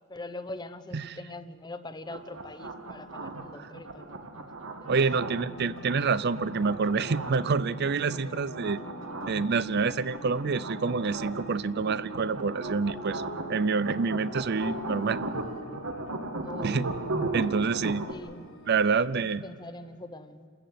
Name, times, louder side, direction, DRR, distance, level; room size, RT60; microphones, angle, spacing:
voice 1, 0.1-4.5 4.8-5.3 16.4-16.9 18.1-18.5 19.2-20.5, left 2 dB, 20° left, 12 dB, 0.9 m, -43 dB
sound 1, 2.1-18.1, right 2 dB, 80° right, 1.8 m, -37 dB
voice 2, 4.9-8.8 9.3-13.2 13.5-15.2 16.6-16.9 17.3-18.0 18.7-19.4, right 4 dB, 55° right, 16 dB, 0.5 m, -27 dB
sound 2, 5.3-19.1, left 1 dB, 85° left, 2.6 m, -46 dB
27.5 x 14.0 x 9.4 m, 2.1 s
head